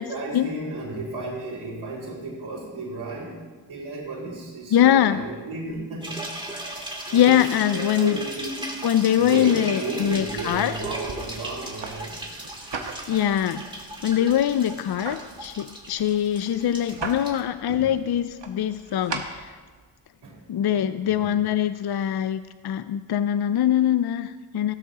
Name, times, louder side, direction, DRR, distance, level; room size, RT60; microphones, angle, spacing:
voice 1, 0.0-3.4 3.7-6.3 7.1-8.6 9.2-12.2 17.7-17.9 20.2-20.4 20.7-21.5, right 2 dB, 90° right, -5 dB, 4.3 m, -33 dB
voice 2, 4.7-5.2 7.1-8.2 8.8-10.8 13.1-13.6 14.0-19.5 20.5-24.7, left 10 dB, 55° left, 12 dB, 0.5 m, -22 dB
sound 1, 6.0-17.4, right 1 dB, 10° right, 2.8 m, -37 dB
sound 2, 10.0-20.0, right 4 dB, 65° right, 1.5 m, -40 dB
15.5 x 13.0 x 2.9 m, 1.4 s
cardioid pair, 55°, 47 cm